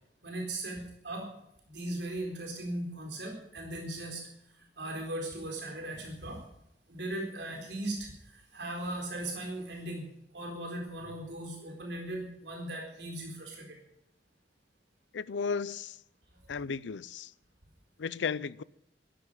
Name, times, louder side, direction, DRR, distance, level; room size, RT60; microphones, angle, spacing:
voice 1, 0.2-1.3 1.7-4.3 4.8-6.4 6.9-13.8, right 1 dB, 70° right, 4.0 m, -38 dB
voice 2, 15.1-16.0 16.5-17.3 18.0-18.6, left 5 dB, 85° left, 0.5 m, -34 dB
13.0 x 11.0 x 9.1 m
head